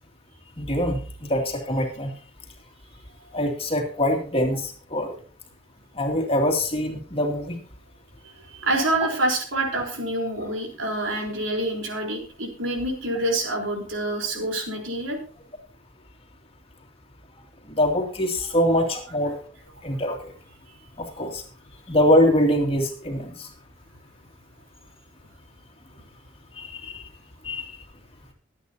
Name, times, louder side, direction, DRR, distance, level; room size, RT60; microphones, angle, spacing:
voice 1, 0.6-2.1 3.3-5.2 5.9-7.6 17.7-19.4 19.8-20.3 21.0-21.4 21.9-23.5 26.6-27.0 27.4-27.8, equal, 30° left, 1 dB, 2.5 m, -24 dB
voice 2, 8.2-15.2, right 1 dB, 80° right, 1 dB, 3.9 m, -27 dB
23.5 x 8.7 x 2.8 m, 0.41 s
head